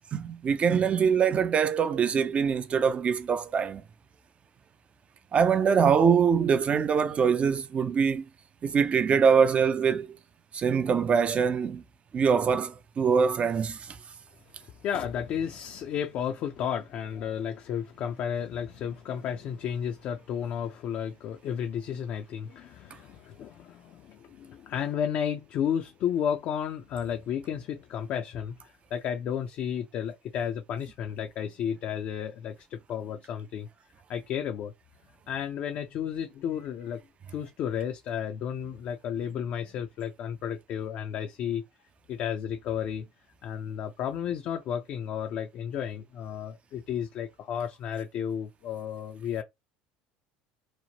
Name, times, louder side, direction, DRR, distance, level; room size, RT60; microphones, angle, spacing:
voice 1, 0.1-3.8 5.3-8.3 8.6-10.2 10.5-11.8 12.1-14.0, right 6 dB, 35° right, 0.4 m, -24 dB
voice 2, 14.5-33.7 34.1-34.7 35.3-37.0 37.3-41.6 42.1-43.1 43.4-49.4, left 8 dB, 55° left, 0.4 m, -33 dB
2.9 x 2.0 x 2.8 m
supercardioid pair, 90°, 4 cm